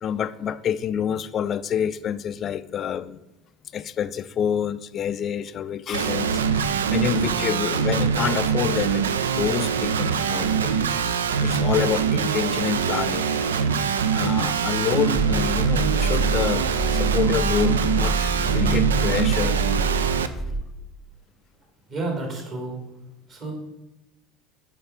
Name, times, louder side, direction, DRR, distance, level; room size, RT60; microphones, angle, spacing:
voice 1, 0.0-3.2 3.7-9.1 9.3-10.9 11.4-13.3 13.5-19.6, left 9 dB, 40° left, 0.4 m, -28 dB
Guitar, 5.9-20.3, right 6 dB, 75° right, 0.4 m, -23 dB
sound 1, 15.2-20.6, right 3 dB, 10° right, 0.9 m, -26 dB
voice 2, 21.9-22.8 23.3-23.5, right 2 dB, 45° right, 2.7 m, -30 dB
7.0 x 4.9 x 5.1 m
figure-of-eight pair, 70°, 0 cm